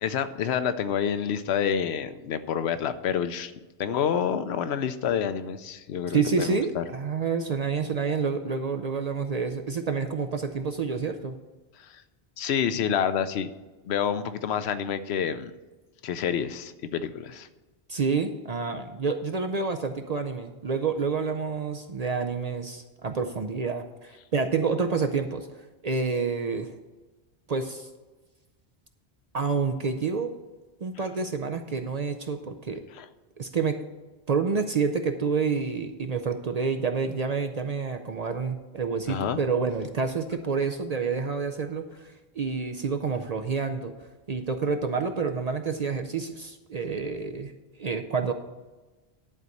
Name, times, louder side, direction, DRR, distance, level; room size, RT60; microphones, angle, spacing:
voice 1, 0.0-3.5 3.8-6.8 11.9-12.0 12.4-13.5 13.8-15.5 16.0-17.5 32.9-33.1 39.1-39.4, left 8 dB, 75° left, 11 dB, 0.8 m, -28 dB
voice 2, 6.1-11.3 17.9-25.5 25.8-26.7 27.5-27.9 29.3-30.3 30.8-32.8 33.4-33.8 34.3-43.9 44.3-47.5 47.8-48.3, right 5 dB, 50° right, 6 dB, 0.5 m, -28 dB
11.0 x 4.0 x 7.8 m, 1.2 s
omnidirectional pair, 1.1 m